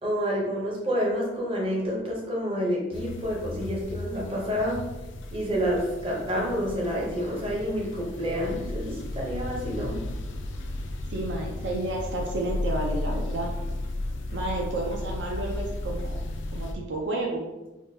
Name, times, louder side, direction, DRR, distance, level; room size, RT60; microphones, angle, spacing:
voice 1, 0.0-4.8 5.3-10.0, equal, 30° right, -3 dB, 0.7 m, -28 dB
sound 1, 2.9-16.7, left 1 dB, 75° left, 0.3 m, -34 dB
voice 2, 11.1-13.5 14.3-16.2 16.5-17.4, right 2 dB, 70° right, 0 dB, 0.4 m, -31 dB
3.4 x 2.2 x 2.6 m, 1.1 s
head